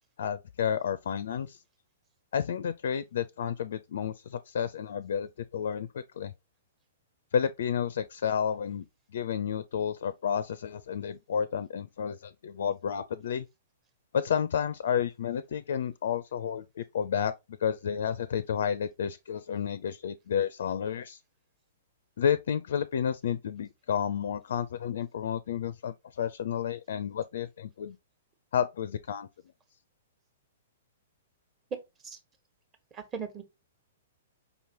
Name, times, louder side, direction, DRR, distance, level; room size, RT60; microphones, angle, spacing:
voice 1, 0.2-1.6 2.3-6.3 7.3-8.9 9.1-13.5 14.1-21.2 22.2-28.0 28.5-29.3, left 8 dB, 60° left, 0.4 m, -31 dB
voice 2, 31.7-32.2 32.9-33.4, right 6 dB, 25° right, 1.2 m, -38 dB
5.2 x 3.0 x 2.9 m
figure-of-eight pair, 110°, 0 cm